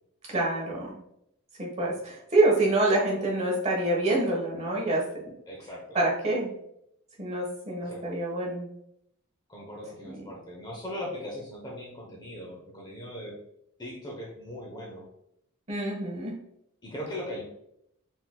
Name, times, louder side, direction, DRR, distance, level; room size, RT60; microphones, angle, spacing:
voice 1, 0.3-0.9 1.6-5.0 5.9-6.5 7.2-8.7 10.0-10.2 15.7-16.3, right 2 dB, 30° right, -3 dB, 1.2 m, -26 dB
voice 2, 5.5-6.0 7.8-8.1 9.5-13.4 13.8-15.1 16.8-17.4, left 1 dB, 20° left, -2 dB, 0.8 m, -39 dB
4.4 x 3.8 x 2.2 m, 0.77 s
head